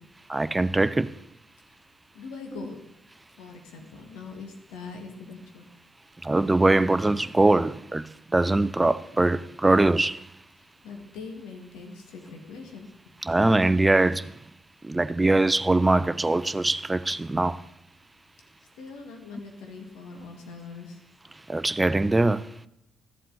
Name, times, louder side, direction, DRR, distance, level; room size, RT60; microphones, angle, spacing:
voice 1, 0.3-1.2 6.2-10.3 13.2-14.4 14.8-17.6 21.5-22.5, right 2 dB, 20° right, 0.5 m, -22 dB
voice 2, 2.1-2.8 3.4-5.7 10.8-12.9 18.8-21.0, left 4 dB, 85° left, 1.8 m, -42 dB
13.0 x 7.6 x 4.0 m
supercardioid pair, 65°, 0 cm